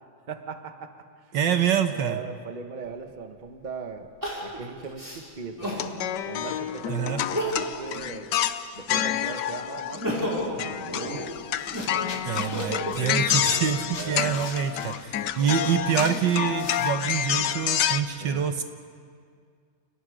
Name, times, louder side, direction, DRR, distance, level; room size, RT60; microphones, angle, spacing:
voice 1, 0.3-1.3 1.8-4.1 4.4-5.9 6.2-8.3 8.7-11.2 11.8-12.2 14.0-14.5 18.2-18.6, right 5 dB, 25° right, 6 dB, 1.2 m, -39 dB
voice 2, 1.3-2.2 6.9-7.2 12.2-18.6, right 8 dB, 65° right, 7 dB, 1.6 m, -26 dB
Crying sobbing, 2.9-3.0 4.2-5.9 6.4-6.5 7.2-7.9 8.3-9.3 9.7-13.8 14.5-16.5 17.1-17.9, equal, 10° right, 5.3 m, -34 dB
sound 1, 5.7-10.3 10.6-18.0, left 10 dB, 65° left, 1.3 m, -28 dB
sound 2, 11.1-11.3 11.6-17.5, left 3 dB, 80° left, 3.4 m, -43 dB
30.0 x 29.5 x 5.1 m, 2.1 s
omnidirectional pair, 2.2 m